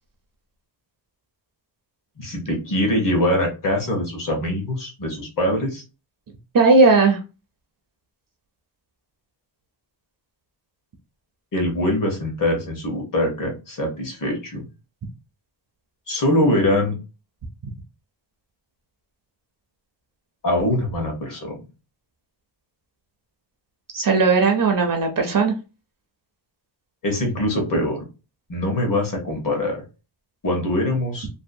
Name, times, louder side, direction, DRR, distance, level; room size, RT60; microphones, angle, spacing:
voice 1, 2.2-5.8 11.5-14.6 16.1-17.0 20.4-21.6 27.0-28.0 28.5-29.8 30.4-31.3, left 1 dB, 45° left, 1 dB, 1.0 m, -23 dB
voice 2, 6.5-7.2 23.9-25.5, right 4 dB, 50° right, 4 dB, 0.5 m, -17 dB
2.7 x 2.1 x 2.5 m, 0.31 s
wide cardioid pair, 160°, 46 cm